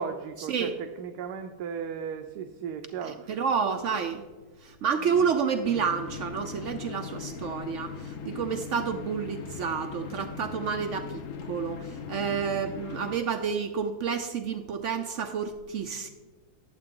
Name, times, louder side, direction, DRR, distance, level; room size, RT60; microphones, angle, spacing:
voice 1, 0.0-3.4 5.0-5.1, right 6 dB, 80° right, 6 dB, 1.2 m, -36 dB
voice 2, 3.3-4.2 4.6-16.1, right 6 dB, 65° right, 7 dB, 0.8 m, -29 dB
sound 1, 5.6-13.2, left 6 dB, 65° left, 1.0 m, -39 dB
11.5 x 7.7 x 3.7 m, 1.3 s
omnidirectional pair, 1.7 m